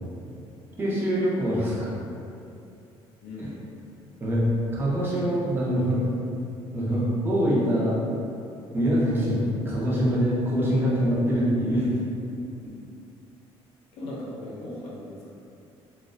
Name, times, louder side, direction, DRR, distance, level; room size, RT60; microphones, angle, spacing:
voice 1, 0.8-1.9 3.4-3.5 4.2-6.0 6.7-8.0 8.7-11.9, equal, 20° right, -7 dB, 0.5 m, -24 dB
voice 2, 3.2-3.5 13.9-15.3, left 1 dB, 70° left, -5 dB, 0.6 m, -37 dB
2.5 x 2.1 x 2.4 m, 2.6 s
cardioid pair, 155°, 10 cm